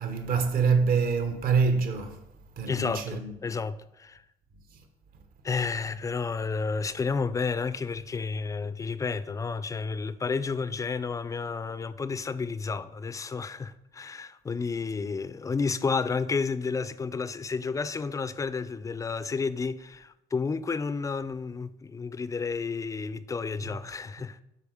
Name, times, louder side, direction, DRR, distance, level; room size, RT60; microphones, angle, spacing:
voice 1, 0.0-2.2 2.6-3.4 23.6-23.8, right 5 dB, 60° right, 1.1 m, -26 dB
voice 2, 2.7-4.2 5.4-24.4, left 4 dB, 20° left, 0.3 m, -31 dB
7.0 x 4.2 x 6.3 m
cardioid pair, 110°, 17 cm